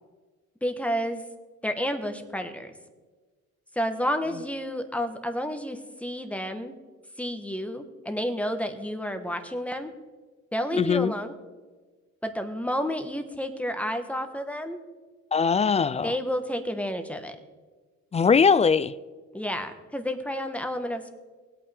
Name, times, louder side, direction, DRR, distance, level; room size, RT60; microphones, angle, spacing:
voice 1, 0.6-1.2 1.6-2.7 3.7-6.7 7.2-9.9 10.5-11.3 12.2-14.8 15.9-17.4 19.3-21.1, equal, 5° left, 1.3 m, -30 dB
voice 2, 10.7-11.1 15.3-16.1 18.1-18.9, left 6 dB, 20° left, 0.4 m, -21 dB
19.5 x 8.7 x 3.5 m
cardioid pair, 90°, 30 cm